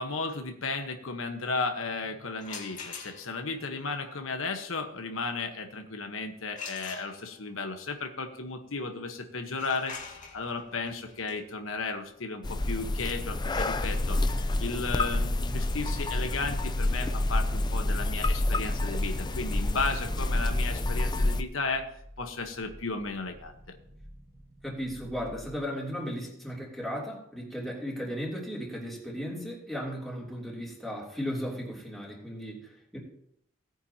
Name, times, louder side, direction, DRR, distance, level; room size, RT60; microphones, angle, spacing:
voice 1, 0.0-14.2 14.6-21.9 22.2-23.5, left 3 dB, 85° left, 5 dB, 1.2 m, -34 dB
sound 1, 2.4-3.5 6.5-7.6 9.4-15.1, left 5 dB, 40° left, 2.1 m, -45 dB
sound 2, 12.4-21.4, left 1 dB, 20° left, 0.5 m, -28 dB
Growling, 21.9-25.7, equal, 30° right, 1.8 m, -52 dB
voice 2, 24.6-33.0, equal, ahead, -4 dB, 3.0 m, -36 dB
17.5 x 9.1 x 2.9 m, 0.72 s
head